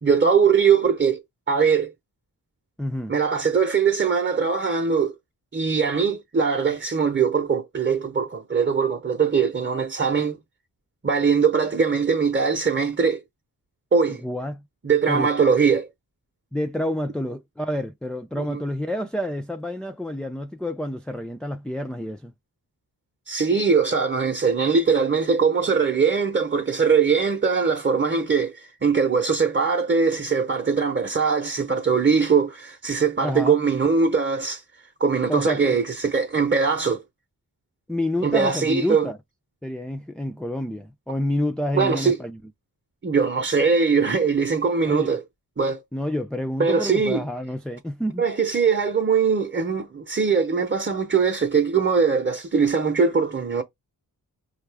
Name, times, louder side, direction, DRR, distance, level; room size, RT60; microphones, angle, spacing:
voice 1, 0.0-1.2 1.5-1.9 3.1-5.1 5.5-10.4 11.0-13.2 13.9-14.2 14.8-15.9 18.4-18.6 23.3-34.6 35.0-37.0 38.2-39.1 41.7-42.2 43.0-45.2 45.6-45.8 46.6-47.2 48.2-53.6, right 5 dB, 30° right, 0.8 m, -21 dB
voice 2, 2.8-3.1 14.2-14.6 15.1-15.3 16.5-22.3 33.2-33.6 35.3-35.8 37.9-39.2 39.6-42.4 44.9-45.1 45.9-48.2, left 1 dB, ahead, 0.4 m, -28 dB
5.3 x 2.5 x 3.4 m
cardioid pair, 45°, 39 cm